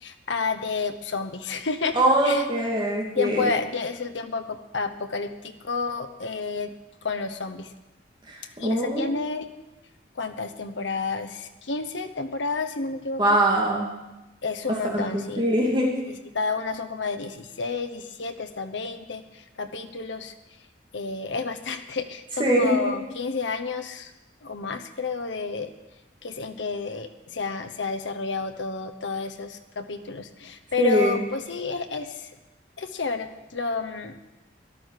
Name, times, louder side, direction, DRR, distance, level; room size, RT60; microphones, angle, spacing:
voice 1, 0.0-2.0 2.2-2.4 3.1-5.3 5.6-6.7 7.0-7.7 8.6-9.5 10.2-13.2 14.4-15.5 16.3-20.3 20.9-24.1 24.4-25.7 26.2-32.3 32.8-34.2, left 4 dB, 85° left, 8 dB, 1.0 m, -30 dB
voice 2, 1.9-3.5 8.3-9.3 13.2-13.9 14.7-15.9 22.4-22.9 30.8-31.2, right 1 dB, 25° right, -2 dB, 2.5 m, -23 dB
13.5 x 11.0 x 6.6 m, 1.0 s
head